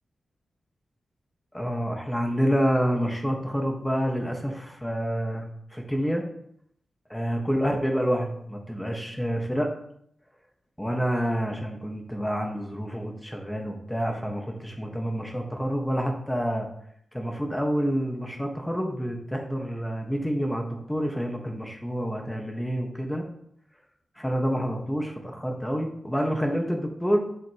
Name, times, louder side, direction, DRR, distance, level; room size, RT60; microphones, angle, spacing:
voice 1, 1.5-5.4 5.7-6.2 7.1-9.7 10.8-16.7 17.1-23.2 24.2-27.3, equal, 5° left, 2 dB, 1.5 m, -28 dB
8.0 x 7.8 x 3.1 m, 0.71 s
wide cardioid pair, 90°, 0 cm